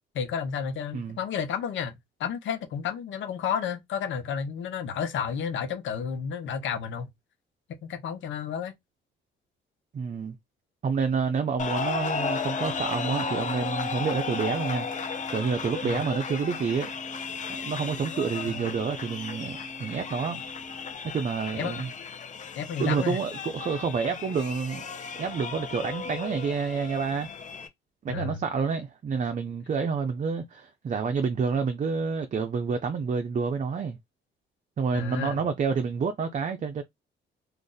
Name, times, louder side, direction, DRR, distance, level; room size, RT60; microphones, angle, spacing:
voice 1, 0.1-7.1 7.8-8.7 15.8-16.1 18.5-18.7 21.6-21.8 22.6-23.2 28.1-28.4 34.9-35.4, left 7 dB, 75° left, 0.9 m, -31 dB
voice 2, 9.9-10.4 10.8-16.9 17.5-20.4 21.1-21.9 22.8-24.8 25.2-27.3 28.0-34.0 34.8-36.8, right 5 dB, 40° right, 0.6 m, -28 dB
sound 1, 11.6-27.7, left 6 dB, 40° left, 0.7 m, -35 dB
sound 2, 12.1-20.9, right 2 dB, 25° right, 1.3 m, -43 dB
2.5 x 2.5 x 3.9 m
cardioid pair, 90°, 20 cm